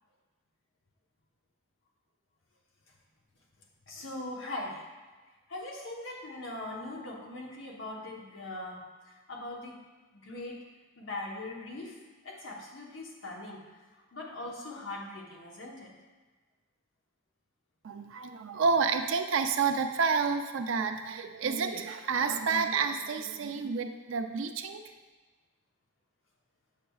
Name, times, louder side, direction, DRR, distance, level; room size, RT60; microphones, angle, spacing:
voice 1, 3.9-4.8 5.5-9.8 10.1-10.6 11.0-12.0 12.2-13.6 14.1-15.9, left 2 dB, 65° left, -1 dB, 1.0 m, -41 dB
voice 2, 17.8-24.8, right 5 dB, 65° right, 6 dB, 0.4 m, -29 dB
7.4 x 5.8 x 2.3 m, 1.3 s
head